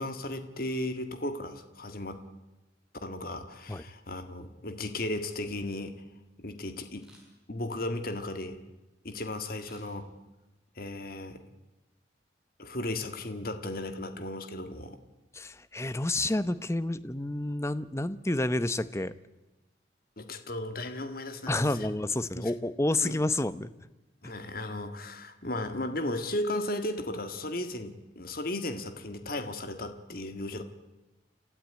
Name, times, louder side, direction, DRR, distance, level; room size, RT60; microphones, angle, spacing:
voice 1, 0.0-2.2 3.0-5.9 6.4-7.1 7.5-8.6 9.0-10.1 10.8-11.4 12.6-15.0 20.2-21.9 22.3-22.5 23.0-23.2 24.2-30.6, left 1 dB, 50° left, 9 dB, 1.7 m, -35 dB
Camera, 5.2-5.8 6.9-7.5 9.5-10.5 10.9-11.0, right 1 dB, 5° right, 6.9 m, -61 dB
voice 2, 15.3-19.1 21.5-23.7 24.2-24.3, left 2 dB, 15° left, 15 dB, 0.7 m, -29 dB
30.0 x 13.5 x 9.5 m, 1.0 s
head